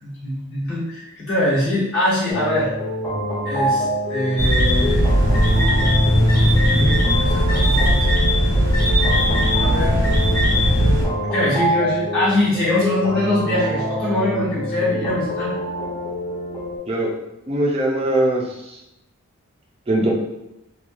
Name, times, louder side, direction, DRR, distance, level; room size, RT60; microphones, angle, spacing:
voice 1, 0.0-2.7 3.4-3.8 4.1-5.0 6.5-7.9 9.6-10.0 11.3-15.5, left 1 dB, 50° left, -11 dB, 1.1 m, -22 dB
sound 1, 2.3-16.8, equal, 15° left, 0.6 m, -26 dB
sound 2, 4.4-11.0, equal, 85° left, 1.2 m, -17 dB
voice 2, 17.5-18.8 19.9-20.1, right 1 dB, 25° right, -2 dB, 0.5 m, -21 dB
3.0 x 2.3 x 2.4 m, 0.88 s
head